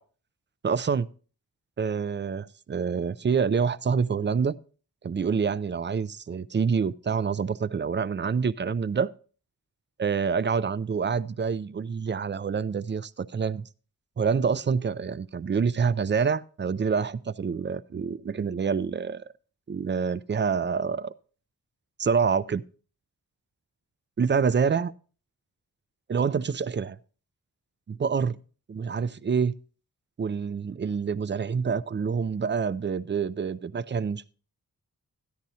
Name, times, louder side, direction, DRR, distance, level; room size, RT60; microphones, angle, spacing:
voice 1, 0.6-1.1 1.8-4.6 5.0-9.1 10.0-13.7 14.2-19.2 19.7-21.1 22.0-22.6 24.2-24.9 26.1-27.0 27.9-28.4 28.7-29.5 30.2-34.3, right 6 dB, 30° right, 0.4 m, -27 dB
13.5 x 10.5 x 2.8 m
cardioid pair, 50°, 38 cm